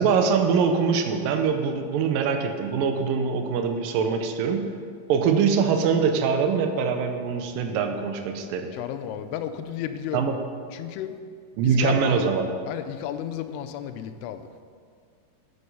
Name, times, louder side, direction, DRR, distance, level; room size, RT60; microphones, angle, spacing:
voice 1, 0.0-4.6 5.1-8.7 10.1-10.4 11.6-12.5, right 6 dB, 75° right, 5 dB, 2.1 m, -23 dB
voice 2, 8.7-10.3 10.7-11.2 11.6-12.3 12.7-14.5, left 10 dB, 90° left, 9 dB, 2.6 m, -33 dB
9.4 x 6.6 x 5.5 m, 2.1 s
omnidirectional pair, 4.6 m